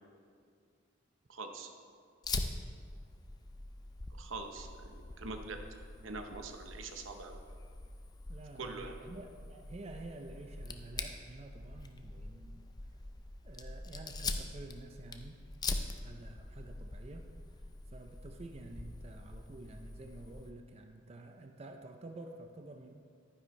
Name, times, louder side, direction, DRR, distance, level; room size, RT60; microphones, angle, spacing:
voice 1, 1.3-1.7 4.2-5.6 6.0-7.4 8.6-8.9, right 3 dB, 85° right, 5 dB, 0.9 m, -43 dB
Fire, 2.2-20.5, left 3 dB, 20° left, 0.5 m, -43 dB
voice 2, 8.3-12.6 13.4-15.4 15.7-17.3 17.9-23.0, right 2 dB, 30° right, 5 dB, 0.5 m, -50 dB
11.0 x 9.8 x 3.2 m, 2.1 s
head